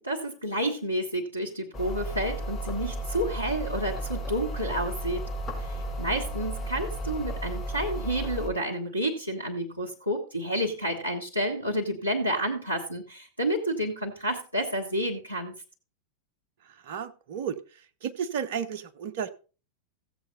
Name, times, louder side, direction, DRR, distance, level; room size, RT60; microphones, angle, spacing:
voice 1, 0.0-5.2 5.6-15.5, equal, 90° left, -2 dB, 1.5 m, -30 dB
sound 1, 1.7-8.5, right 1 dB, 10° left, 4.3 m, -34 dB
voice 2, 16.7-17.6 18.0-19.3, right 7 dB, 50° right, 12 dB, 1.0 m, -33 dB
15.5 x 7.8 x 4.0 m, 0.36 s
figure-of-eight pair, 90°, 0 cm